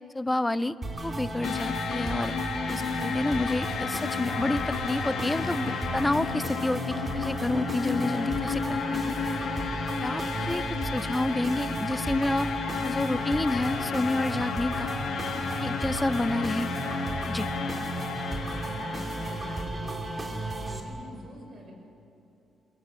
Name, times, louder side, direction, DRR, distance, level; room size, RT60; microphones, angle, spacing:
voice 1, 0.1-0.8 1.0-2.3 2.7-9.2 10.0-12.5 12.8-14.9 15.6-16.7 17.3-17.5, left 2 dB, 10° left, 15 dB, 0.5 m, -29 dB
sound 1, 0.8-20.8, right 1 dB, 20° right, 2.6 m, -34 dB
sound 2, 1.4-19.6, left 6 dB, 75° left, 2.6 m, -33 dB
voice 2, 18.4-20.0 20.4-21.7, equal, 40° right, 1 dB, 5.5 m, -47 dB
25.5 x 22.5 x 7.5 m, 2.9 s
cardioid pair, 160°, 0 cm